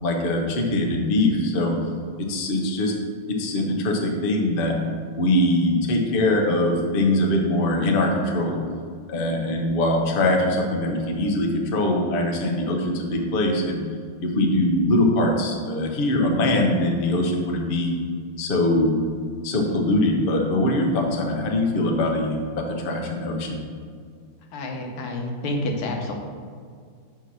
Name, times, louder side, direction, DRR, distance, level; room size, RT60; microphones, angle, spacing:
voice 1, 0.0-1.7 2.2-2.9 3.3-4.7 5.2-8.6 9.1-13.8 14.2-17.9 18.4-19.0 19.4-22.4 22.7-23.6, left 1 dB, 60° left, 0 dB, 0.5 m, -22 dB
voice 2, 24.5-26.1, left 1 dB, 80° left, 1 dB, 1.8 m, -28 dB
5.6 x 4.4 x 6.2 m, 2.1 s
omnidirectional pair, 2.4 m